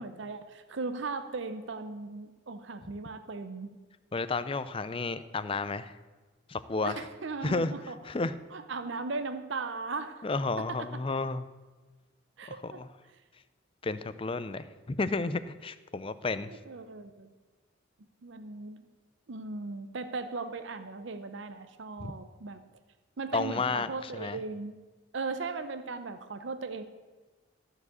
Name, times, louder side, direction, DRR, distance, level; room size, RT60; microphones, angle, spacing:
voice 1, 0.0-3.8 6.8-8.0 8.5-10.3 10.6-11.0 12.4-12.8 16.7-17.3 18.2-18.8 19.3-22.6 23.2-24.7 25.1-26.8, right 3 dB, 70° right, 9 dB, 0.7 m, -37 dB
voice 2, 4.1-5.9 6.5-6.9 7.4-7.7 8.0-8.4 10.2-11.4 12.5-12.9 13.8-16.5 22.0-22.1 23.3-24.4, left 3 dB, 25° left, 13 dB, 0.5 m, -32 dB
14.0 x 4.9 x 7.9 m, 1.3 s
head